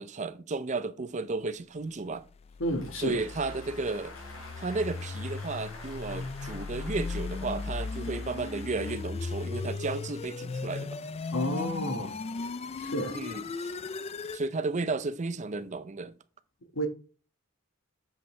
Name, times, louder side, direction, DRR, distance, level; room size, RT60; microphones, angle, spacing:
voice 1, 0.0-2.2 3.0-4.1 4.6-11.0 13.1-13.7 14.3-16.2, right 3 dB, 35° right, 0.5 m, -33 dB
sound 1, 2.3-14.5, left 4 dB, 30° left, 0.3 m, -37 dB
Applause, 2.5-9.6, left 2 dB, 80° left, 4.5 m, -49 dB
voice 2, 2.6-3.2 11.3-12.1 12.8-13.2 16.7-16.9, equal, 60° left, 1.4 m, -31 dB
7.9 x 7.1 x 3.3 m
head